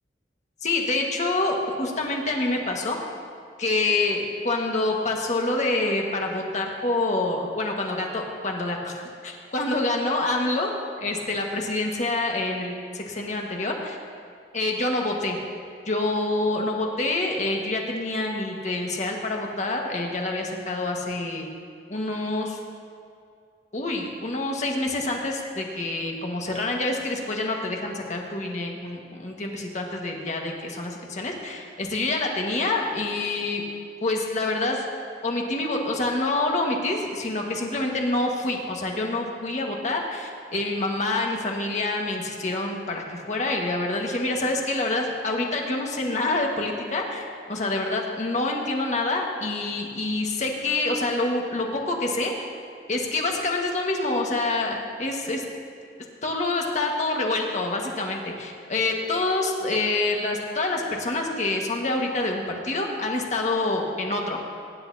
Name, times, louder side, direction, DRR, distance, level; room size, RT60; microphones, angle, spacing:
voice 1, 0.6-3.0 3.6-10.7 11.0-14.0 14.5-15.4 15.8-21.5 21.9-22.6 23.7-33.6 34.0-34.8 35.2-52.4 52.9-55.4 56.2-64.4, left 2 dB, 45° left, 0 dB, 1.6 m, -27 dB
22.5 x 10.5 x 2.8 m, 2.3 s
head